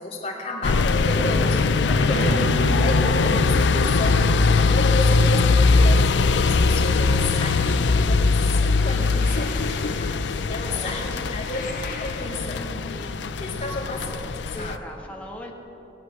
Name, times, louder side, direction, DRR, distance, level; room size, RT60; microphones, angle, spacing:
voice 1, 0.0-13.1 13.4-14.9, left 1 dB, 35° left, -5 dB, 2.6 m, -32 dB
sound 1, 0.6-14.8, left 4 dB, 85° left, 0.5 m, -21 dB
voice 2, 1.8-2.6 10.7-11.2 11.5-11.6 14.5-15.5, equal, 10° left, -1 dB, 1.4 m, -36 dB
Acoustic guitar, 2.1-7.3, right 5 dB, 75° right, 0.5 m, -37 dB
sound 2, 5.3-6.2 6.8-7.9 8.9-10.5 11.4-12.7, left 4 dB, 50° left, 1.4 m, -41 dB
20.0 x 8.1 x 7.5 m, 2.9 s
head